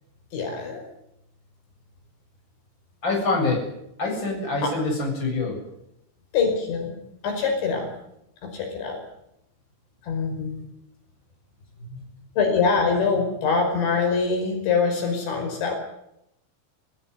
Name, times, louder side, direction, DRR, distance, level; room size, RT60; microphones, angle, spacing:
voice 1, 0.3-0.8 4.6-4.7 6.3-6.9 7.2-7.9 8.5-9.0 10.0-10.5 11.9-12.0 12.4-15.8, left 5 dB, 70° left, 3 dB, 7.4 m, -24 dB
voice 2, 3.0-3.7 4.0-5.6, left 3 dB, 25° left, 1 dB, 8.1 m, -25 dB
27.5 x 15.5 x 9.8 m, 0.81 s
omnidirectional pair, 5.4 m